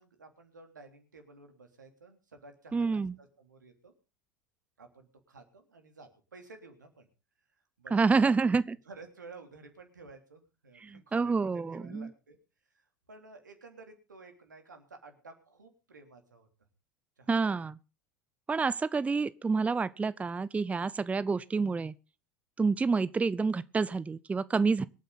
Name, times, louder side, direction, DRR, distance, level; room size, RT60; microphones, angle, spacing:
voice 1, 0.0-3.9 4.8-7.1 7.8-8.6 8.9-12.4 12.7-16.5 17.2-17.3, right 3 dB, 80° right, 3.3 m, -52 dB
voice 2, 2.7-3.1 7.9-8.8 10.8-12.1 17.3-17.8 18.5-21.9 22.6-24.9, right 4 dB, 15° right, 0.6 m, -28 dB
25.0 x 9.2 x 4.1 m
figure-of-eight pair, 75°, 10 cm